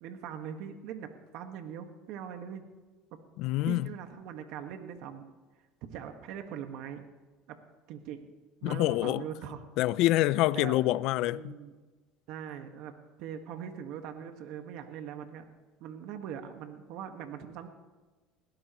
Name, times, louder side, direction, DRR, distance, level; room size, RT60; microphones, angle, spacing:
voice 1, 0.0-2.7 3.6-5.3 5.8-7.0 7.5-7.6 7.9-8.3 8.6-9.6 10.5-10.8 11.3-11.7 12.3-12.9 13.2-15.4 15.8-17.7, right 8 dB, 70° right, 1.7 m, -41 dB
voice 2, 3.4-3.9 8.6-9.2 9.8-11.5, left 16 dB, 65° left, 0.5 m, -26 dB
21.0 x 17.5 x 3.1 m
supercardioid pair, 100°, 0 cm